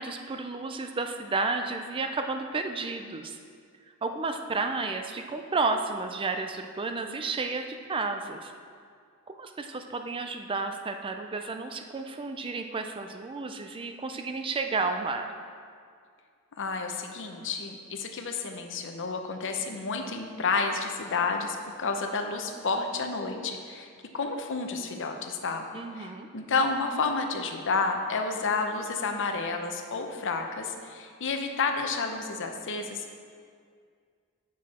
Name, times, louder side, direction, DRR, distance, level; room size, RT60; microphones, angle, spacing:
voice 1, 0.0-3.4 4.0-8.5 9.3-15.3 25.7-26.3, right 3 dB, 25° right, 6 dB, 0.4 m, -32 dB
voice 2, 16.6-23.9 24.1-25.6 26.0-33.1, left 4 dB, 60° left, 5 dB, 0.7 m, -30 dB
8.2 x 6.2 x 4.2 m, 2.1 s
head